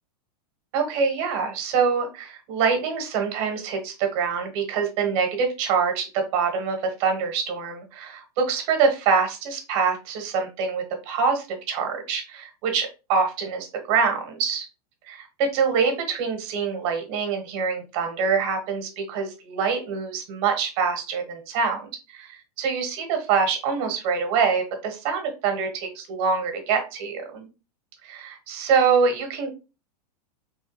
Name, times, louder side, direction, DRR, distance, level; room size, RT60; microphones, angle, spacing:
voice 1, 0.7-14.7 15.1-27.5 28.0-29.5, right 5 dB, 45° right, 5 dB, 1.1 m, -25 dB
3.3 x 2.2 x 3.0 m, 0.30 s
supercardioid pair, 140°, 20 cm